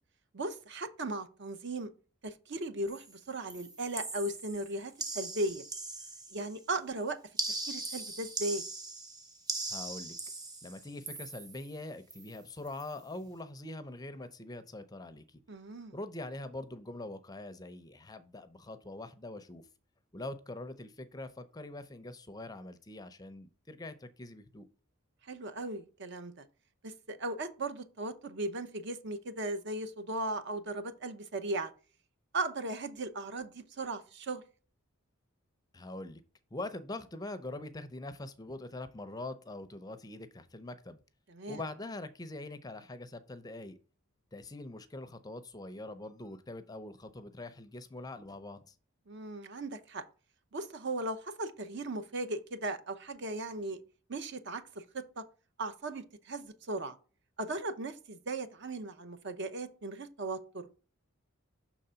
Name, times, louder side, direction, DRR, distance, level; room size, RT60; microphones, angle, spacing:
voice 1, 0.3-1.9 2.2-5.6 6.3-7.2 7.7-8.6 15.5-15.9 25.3-26.4 26.8-31.7 32.3-34.4 41.3-41.6 49.1-50.0 50.5-53.8 54.1-55.2 55.6-57.0 57.4-60.7, right 2 dB, 55° right, 0.8 m, -37 dB
sound 1, 2.9-3.2 3.5-6.6 7.4-11.7 12.1-12.4 12.7-12.9, right 2 dB, 20° right, 0.9 m, -40 dB
voice 2, 9.7-10.1 10.6-15.4 15.9-19.6 20.1-24.7 35.7-36.2 36.5-41.0 41.5-43.8 44.3-48.7, left 2 dB, 20° left, 0.5 m, -43 dB
6.0 x 3.8 x 5.6 m
head